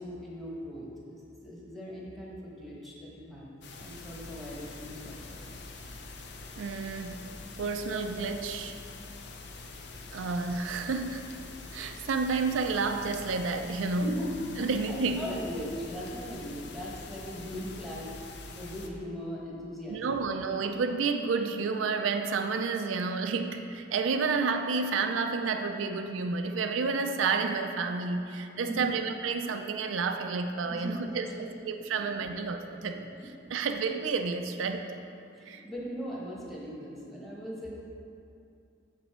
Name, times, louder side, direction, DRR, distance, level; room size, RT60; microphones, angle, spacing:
voice 1, 0.0-3.5 3.8-5.4 14.0-14.3 14.9-18.1 18.6-20.2 28.7-28.9 30.7-31.5 33.4-33.5 35.4-37.7, equal, ahead, -5 dB, 1.1 m, -39 dB
sound 1, 3.6-18.9, left 3 dB, 60° left, 0.6 m, -45 dB
voice 2, 6.6-7.3 7.6-8.8 10.1-11.3 11.7-14.1 14.6-15.3 19.9-33.1 33.5-34.9 35.5-35.6, right 4 dB, 85° right, 6 dB, 0.4 m, -30 dB
6.9 x 5.4 x 4.3 m, 2.6 s
head